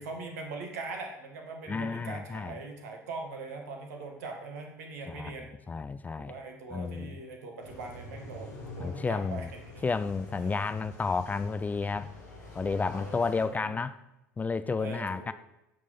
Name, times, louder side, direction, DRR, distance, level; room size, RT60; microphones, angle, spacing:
voice 1, 0.0-5.5 6.2-9.5 9.7-9.8 13.0-13.8 14.8-15.3, right 3 dB, 65° right, 3 dB, 1.9 m, -41 dB
voice 2, 1.7-2.6 5.1-5.3 5.7-6.3 6.7-7.2 8.8-9.5 9.8-12.1 12.5-14.0 14.4-15.3, left 4 dB, 15° left, 13 dB, 0.5 m, -31 dB
sound 1, 7.6-13.4, left 1 dB, 80° left, 3.0 m, -46 dB
16.0 x 6.3 x 5.6 m, 0.92 s
figure-of-eight pair, 70°, 9 cm